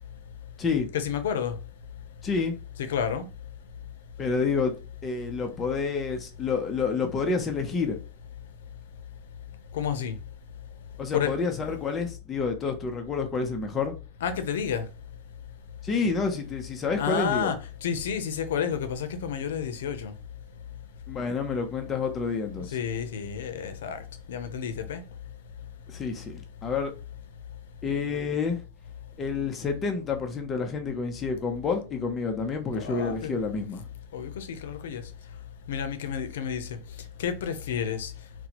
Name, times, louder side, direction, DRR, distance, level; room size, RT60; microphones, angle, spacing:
voice 1, 0.9-1.5 2.8-3.2 9.7-10.1 11.1-11.3 14.2-14.8 17.0-17.6 17.8-20.1 22.7-24.0 24.3-25.0 32.8-33.3 34.1-35.0 35.7-36.8 37.2-38.1, left 7 dB, 90° left, 0.5 m, -30 dB
voice 2, 2.2-2.6 4.2-4.7 5.0-8.0 11.0-13.9 15.8-17.5 21.1-22.7 25.9-26.9 27.8-28.6 29.2-33.8, left 4 dB, 15° left, 0.5 m, -29 dB
4.1 x 2.0 x 2.8 m
supercardioid pair, 170°, 0 cm